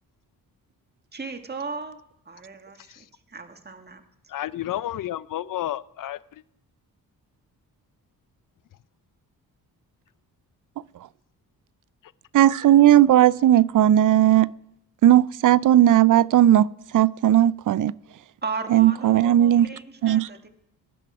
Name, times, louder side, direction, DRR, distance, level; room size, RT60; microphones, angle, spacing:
voice 1, 1.1-2.0 2.2-4.0 18.4-20.5, right 4 dB, 25° right, 7 dB, 1.6 m, -36 dB
voice 2, 2.8-3.1 4.3-6.4 12.0-12.1 12.4-12.6, left 13 dB, 55° left, 18 dB, 0.6 m, -32 dB
voice 3, 12.3-14.5 15.0-16.7 16.9-17.9 18.7-19.7 20.0-20.3, right 12 dB, 55° right, 21 dB, 0.5 m, -16 dB
18.5 x 10.5 x 4.8 m, 0.80 s
cardioid pair, 65°, 38 cm